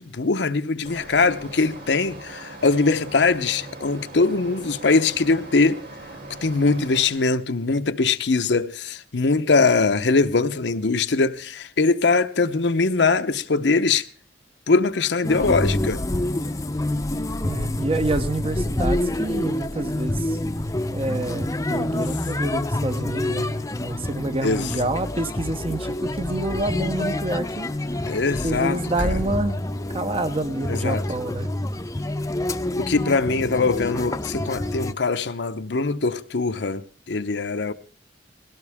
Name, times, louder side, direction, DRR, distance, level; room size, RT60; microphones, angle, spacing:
voice 1, 0.0-5.8 6.4-14.0 14.7-16.0 21.9-22.0 24.4-24.7 28.1-28.8 29.0-29.1 30.7-31.0 32.8-37.7, left 4 dB, 70° left, 0.8 m, -22 dB
sound 1, 0.8-7.0, right 2 dB, 65° right, 7.3 m, -40 dB
sound 2, 15.2-34.9, left 1 dB, 20° left, 0.7 m, -27 dB
voice 2, 17.4-20.4 20.9-23.5 23.8-28.2 28.4-29.6 29.9-31.5, right 2 dB, 30° right, 0.8 m, -28 dB
21.5 x 17.0 x 3.5 m
head